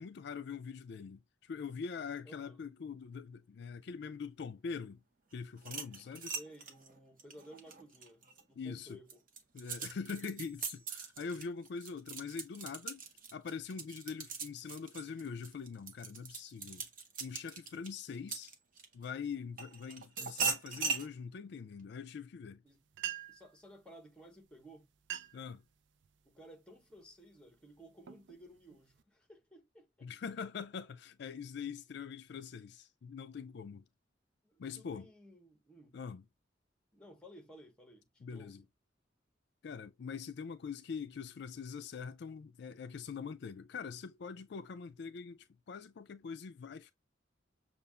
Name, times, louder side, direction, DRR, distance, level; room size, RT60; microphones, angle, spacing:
voice 1, 0.0-5.0 5.3-6.4 8.6-9.0 9.5-13.0 13.3-16.8 17.2-18.5 18.9-22.6 25.3-25.6 30.0-33.8 34.6-35.1 35.9-36.2 38.2-38.6 39.6-46.9, left 5 dB, 60° left, 0.4 m, -43 dB
voice 2, 2.2-2.6 6.3-9.2 22.6-22.8 23.3-24.9 26.2-30.1 34.4-36.0 36.9-38.6, equal, 5° left, 1.1 m, -56 dB
sound 1, 5.6-8.4 8.9-19.0 19.6-21.1, right 5 dB, 45° right, 0.9 m, -40 dB
sound 2, 22.7-22.8 22.9-23.5 24.4-24.6 24.9-25.5 26.0-26.4 27.0-27.2 27.8-29.0, right 11 dB, 70° right, 0.4 m, -44 dB
6.7 x 2.4 x 2.3 m
head